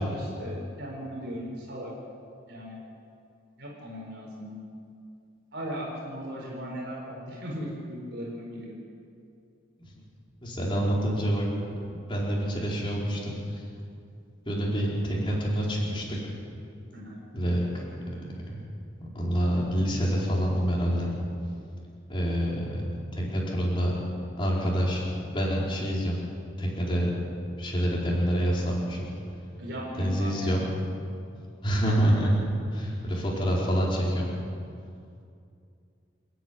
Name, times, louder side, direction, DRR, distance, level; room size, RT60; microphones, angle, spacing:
voice 1, 0.0-1.9 2.5-2.8 3.6-4.6 5.5-8.7 16.9-17.2 29.6-30.5, equal, 55° right, -3 dB, 5.1 m, -37 dB
voice 2, 10.4-11.5 11.8-13.6 14.5-16.2 17.3-17.8 18.5-18.6 19.0-21.1 22.1-22.8 23.2-23.9 24.4-25.1 25.3-26.2 26.6-27.1 27.6-29.1 30.0-30.7 31.6-32.4 32.7-34.3, equal, 25° left, -4 dB, 4.5 m, -27 dB
30.0 x 10.0 x 9.5 m, 2.5 s
head